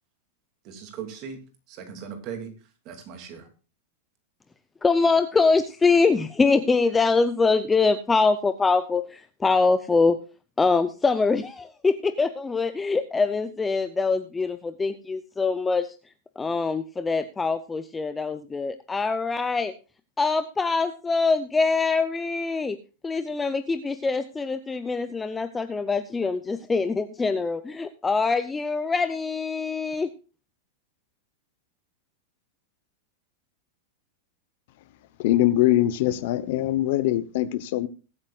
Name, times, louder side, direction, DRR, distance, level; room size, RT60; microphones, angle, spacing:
voice 1, 0.6-1.4 1.7-2.5 2.8-3.5, right 7 dB, 35° right, 6 dB, 2.5 m, -38 dB
voice 2, 4.8-10.2 10.6-16.0 16.4-19.7 20.2-22.8 23.0-30.1, left 4 dB, 10° left, 10 dB, 0.5 m, -24 dB
voice 3, 35.2-37.9, left 14 dB, 55° left, 15 dB, 0.9 m, -22 dB
21.5 x 8.8 x 2.4 m, 0.34 s
supercardioid pair, 160°, 0 cm